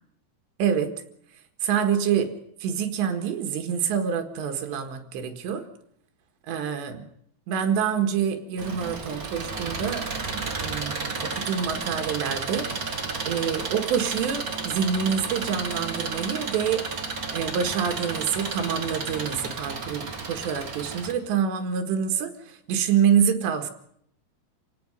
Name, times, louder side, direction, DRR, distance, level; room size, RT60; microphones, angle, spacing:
voice 1, 0.6-0.9 1.6-2.3 2.6-5.6 6.5-7.1 7.5-12.7 13.2-16.9 17.3-23.7, right 8 dB, 80° right, 6 dB, 3.8 m, -26 dB
Engine, 8.6-21.1, right 4 dB, 55° right, 0.9 m, -32 dB
28.0 x 17.5 x 5.4 m, 0.68 s
omnidirectional pair, 5.0 m